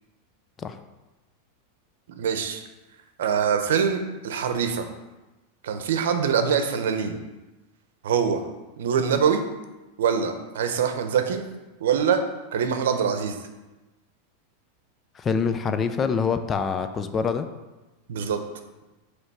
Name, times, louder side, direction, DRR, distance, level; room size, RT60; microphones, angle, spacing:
voice 1, 2.1-2.6 3.2-4.9 5.6-7.2 8.0-8.4 8.8-9.4 10.0-11.4 11.8-12.2 12.5-13.4 18.1-18.4, right 7 dB, 85° right, 7 dB, 0.8 m, -24 dB
voice 2, 15.2-17.5, left 5 dB, 20° left, 9 dB, 0.4 m, -25 dB
7.9 x 3.2 x 5.5 m, 1.1 s
supercardioid pair, 155°, 0 cm